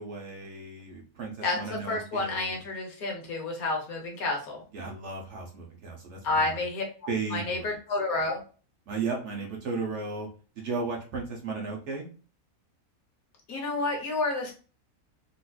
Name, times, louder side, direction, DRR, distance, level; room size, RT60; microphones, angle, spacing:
voice 1, 0.0-2.6 4.7-6.6 7.1-7.7 8.9-10.3 10.6-12.1, right 4 dB, 60° right, 0 dB, 0.9 m, -35 dB
voice 2, 1.4-4.6 6.2-6.8 7.3-8.4 13.5-14.5, left 2 dB, 70° left, 1 dB, 1.4 m, -30 dB
3.9 x 2.5 x 2.3 m, 0.37 s
omnidirectional pair, 1.6 m